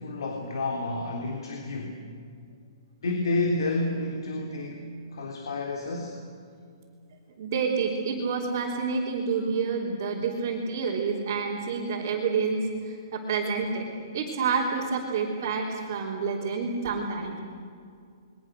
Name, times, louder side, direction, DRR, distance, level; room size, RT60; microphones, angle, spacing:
voice 1, 0.0-2.1 3.0-6.2, left 2 dB, 75° left, 2 dB, 3.4 m, -30 dB
voice 2, 7.4-13.9 14.1-17.4, right 5 dB, 35° right, -5 dB, 3.3 m, -28 dB
29.0 x 22.5 x 6.5 m, 2.3 s
hypercardioid pair, 175°, 2 cm